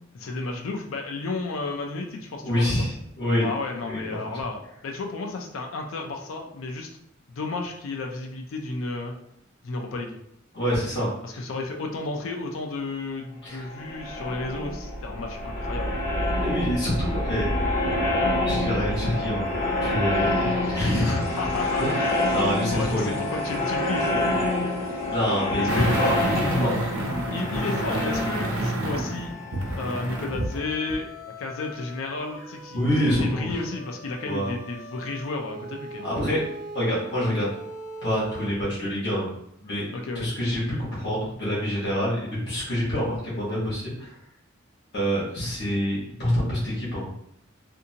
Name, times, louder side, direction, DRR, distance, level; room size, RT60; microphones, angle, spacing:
voice 1, 0.1-2.8 3.4-6.9 7.3-9.1 9.6-10.2 11.2-16.0 21.0-22.1 22.6-24.4 25.6-25.9 27.3-29.3 29.8-36.1 39.9-40.3, left 3 dB, 75° left, 2 dB, 0.4 m, -33 dB
voice 2, 2.4-3.5 3.8-4.2 10.5-11.1 13.4-13.6 16.4-17.5 18.3-19.5 19.8-21.3 21.8-22.0 22.3-23.2 25.1-26.8 32.7-33.6 34.2-34.5 36.0-36.4 36.7-37.5 38.0-39.3 39.6-39.9 40.1-44.1 44.9-47.1, equal, 55° left, -7 dB, 1.2 m, -26 dB
sound 1, 13.6-30.2, left 1 dB, 35° left, 1.1 m, -27 dB
sound 2, 19.4-38.5, equal, 35° right, 0.6 m, -43 dB
sound 3, 25.7-30.6 30.9-31.0, right 1 dB, 85° right, 0.7 m, -28 dB
2.6 x 2.6 x 2.7 m, 0.74 s
head